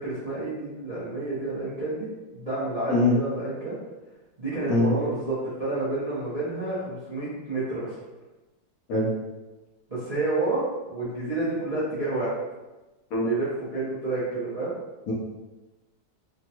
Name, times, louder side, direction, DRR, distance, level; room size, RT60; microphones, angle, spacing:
voice 1, 0.0-2.1 2.3-3.8 4.4-8.0 9.9-12.3 13.2-14.7, right 2 dB, 40° right, -11 dB, 0.5 m, -29 dB
voice 2, 2.9-3.2 4.7-4.9 8.9-9.1 13.1-13.3 15.1-15.2, left 2 dB, 65° left, -4 dB, 1.0 m, -22 dB
3.4 x 2.2 x 2.8 m, 1.1 s
omnidirectional pair, 1.9 m